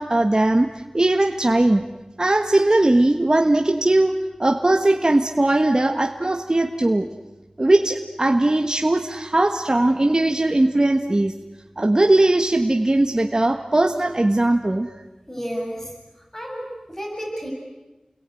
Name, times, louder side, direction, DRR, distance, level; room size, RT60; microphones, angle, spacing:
voice 1, 0.0-1.9 2.2-7.1 7.6-11.3 11.8-14.9, right 2 dB, 35° right, 4 dB, 1.4 m, -19 dB
voice 2, 15.3-17.5, equal, 20° left, 0 dB, 7.3 m, -32 dB
30.0 x 21.5 x 9.1 m, 1.1 s
wide cardioid pair, 65°, 2 cm